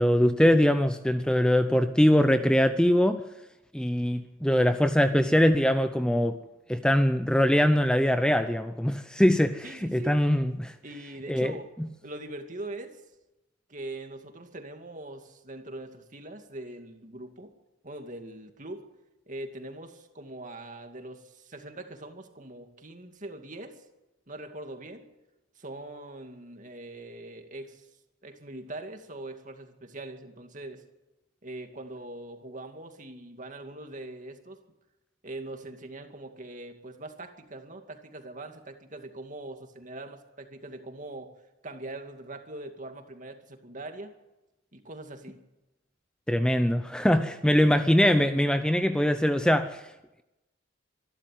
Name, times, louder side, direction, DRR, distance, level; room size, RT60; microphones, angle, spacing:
voice 1, 0.0-3.2 3.7-6.4 6.7-10.7 11.3-11.5 46.3-49.8, equal, 5° left, 9 dB, 0.7 m, -22 dB
voice 2, 9.6-10.1 10.8-11.7 12.0-13.0 13.7-17.5 17.8-18.8 19.3-23.8 24.3-25.1 25.6-27.9 28.2-30.8 31.4-34.6 35.2-41.3 41.6-44.1 44.7-45.4 47.4-47.7, right 2 dB, 40° right, 5 dB, 2.4 m, -42 dB
25.5 x 12.0 x 9.2 m, 0.99 s
head